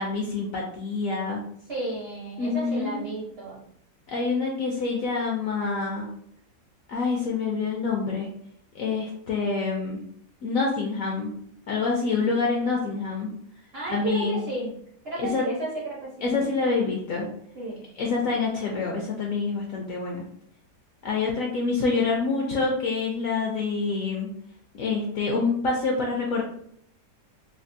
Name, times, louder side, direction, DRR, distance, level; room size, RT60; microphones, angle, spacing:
voice 1, 0.0-1.4 2.4-3.0 4.1-6.1 6.9-8.3 8.7-10.0 10.4-11.3 11.7-13.3 13.9-14.4 15.2-15.4 16.2-17.3 18.0-20.2 21.0-24.3 24.7-26.4, left 4 dB, 70° left, -1 dB, 0.8 m, -26 dB
voice 2, 1.7-3.6 13.7-14.7 15.0-16.1 17.5-17.8, right 2 dB, 55° right, -6 dB, 0.7 m, -32 dB
3.4 x 2.3 x 2.6 m, 0.66 s
omnidirectional pair, 1.9 m